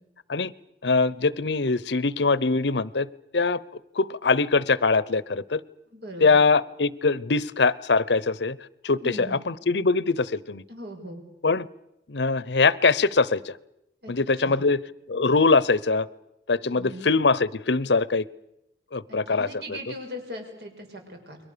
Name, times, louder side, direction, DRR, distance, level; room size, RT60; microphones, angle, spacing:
voice 1, 0.8-3.1 3.3-3.6 3.9-5.6 6.2-8.6 8.8-10.6 11.4-11.7 12.1-13.6 14.1-14.8 15.1-16.1 16.5-18.3 18.9-19.5, left 4 dB, 75° left, 20 dB, 0.8 m, -22 dB
voice 2, 5.9-6.4 9.0-9.4 10.7-11.2 14.0-14.1 14.4-14.6 16.6-17.1 19.1-21.4, equal, 65° right, 4 dB, 6.5 m, -39 dB
29.5 x 22.5 x 6.9 m, 0.85 s
head